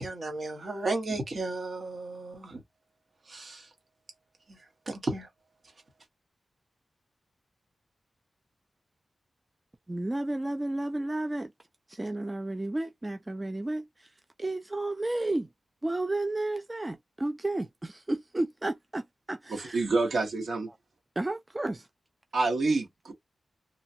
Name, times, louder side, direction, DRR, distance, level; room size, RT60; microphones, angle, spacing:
voice 1, 0.0-2.6 3.3-3.7 4.5-4.6 4.9-5.3, right 2 dB, 45° right, 1.2 m, -34 dB
voice 2, 9.9-11.5 11.9-15.5 15.8-19.8 21.2-21.9, right 2 dB, 15° right, 0.3 m, -32 dB
voice 3, 19.5-20.7 22.3-23.1, right 3 dB, 75° right, 1.4 m, -27 dB
2.9 x 2.3 x 2.7 m
wide cardioid pair, 155°, 0 cm